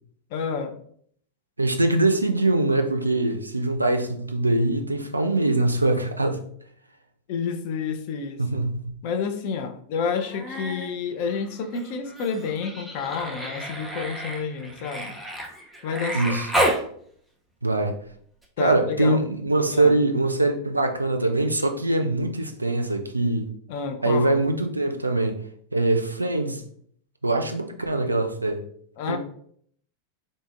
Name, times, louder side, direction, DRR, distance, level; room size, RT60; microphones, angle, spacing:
voice 1, 0.3-0.8 7.3-8.4 9.0-15.1 15.8-16.4 18.6-19.2 19.7-20.0 23.7-24.4 29.0-29.2, left 5 dB, 50° left, 0.4 m, -29 dB
voice 2, 1.6-6.4 8.4-8.9 16.1-16.5 17.6-18.0 18.6-23.5 24.0-25.4 25.7-26.7 27.2-28.6 29.1-29.2, right 2 dB, 80° right, 0.3 m, -23 dB
Human voice, 10.1-10.9 11.2-16.8 18.4-18.5, right 1 dB, ahead, 0.6 m, -31 dB
3.8 x 2.4 x 2.4 m
figure-of-eight pair, 90°, 0 cm